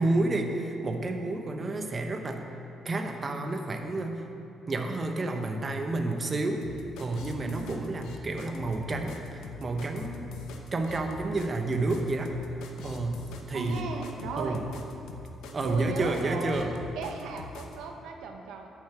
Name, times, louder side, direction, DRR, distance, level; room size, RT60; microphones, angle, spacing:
voice 1, 0.0-2.4 2.8-4.2 4.7-6.7 7.0-10.3 10.7-12.3 12.8-13.2 13.5-13.9 14.4-14.6 15.5-16.7, right 2 dB, 35° right, 4 dB, 0.9 m, -30 dB
sound 1, 6.6-17.8, left 4 dB, 85° left, 0.8 m, -43 dB
voice 2, 7.4-7.8 13.5-14.6 15.6-16.6 17.0-18.7, right 4 dB, 90° right, 3 dB, 0.7 m, -37 dB
8.8 x 5.7 x 7.0 m, 2.9 s
cardioid pair, 90°, 0 cm